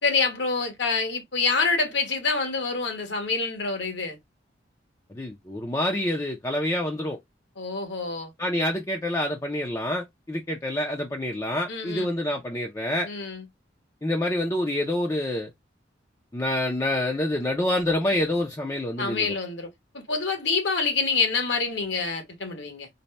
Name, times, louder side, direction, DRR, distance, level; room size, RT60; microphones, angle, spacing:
voice 1, 0.0-4.2 7.6-8.3 11.7-12.1 13.0-13.4 19.0-19.7 19.9-22.9, left 4 dB, 70° left, 1.3 m, -26 dB
voice 2, 5.1-7.2 8.4-13.1 14.0-15.5 16.3-19.3, left 1 dB, 15° left, 0.5 m, -27 dB
4.0 x 2.2 x 3.2 m
head